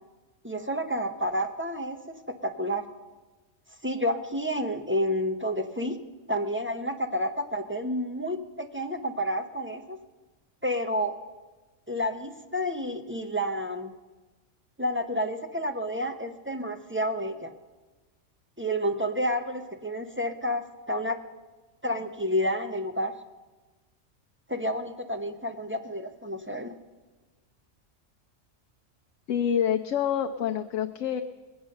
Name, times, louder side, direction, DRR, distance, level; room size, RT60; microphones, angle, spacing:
voice 1, 0.4-2.8 3.8-6.0 6.3-10.0 10.6-11.2 11.9-13.9 14.8-17.5 18.6-21.2 21.8-23.2 24.5-26.7, equal, 10° right, 5 dB, 0.6 m, -30 dB
voice 2, 29.3-31.2, left 9 dB, 80° left, 6 dB, 1.0 m, -27 dB
21.0 x 8.1 x 6.5 m, 1.2 s
omnidirectional pair, 1.3 m